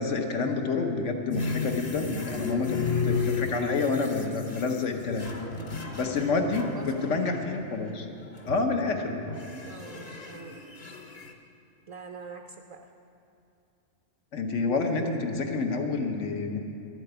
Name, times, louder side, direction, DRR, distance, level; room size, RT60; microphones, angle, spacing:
voice 1, 0.0-5.3 6.0-6.7 7.0-8.1 8.4-9.2 14.3-16.6, left 4 dB, 75° left, 4 dB, 1.4 m, -28 dB
sound 1, 1.3-7.7 8.2-8.8 9.3-11.3, left 4 dB, 35° left, 0.8 m, -34 dB
voice 2, 2.0-2.8 5.4-6.3 6.7-7.5 9.7-10.5 11.9-12.9, right 4 dB, 45° right, 3 dB, 0.5 m, -45 dB
12.0 x 7.9 x 7.9 m, 2.6 s
omnidirectional pair, 1.3 m